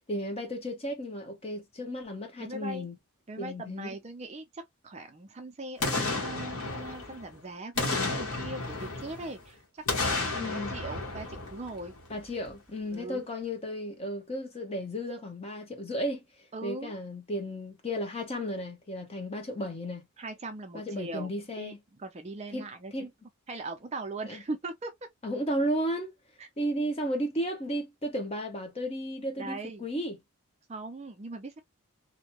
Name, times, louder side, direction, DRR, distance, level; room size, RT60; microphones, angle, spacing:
voice 1, 0.1-2.9 3.4-4.0 10.3-10.8 12.1-16.2 16.6-20.0 20.7-21.8 22.5-22.7 22.9-23.1 24.3-24.4 25.2-26.1 26.6-30.2, equal, 25° left, 0.7 m, -34 dB
voice 2, 2.4-2.9 3.3-11.9 12.9-13.3 16.5-16.9 20.2-21.3 21.6-23.1 23.5-24.9 26.4-26.5 29.4-29.9 30.7-31.6, right 2 dB, 30° right, 0.4 m, -40 dB
Boom, 5.8-7.3 7.8-9.4 9.9-12.1 12.5-12.6, left 3 dB, 75° left, 1.2 m, -32 dB
2.6 x 2.1 x 2.9 m
head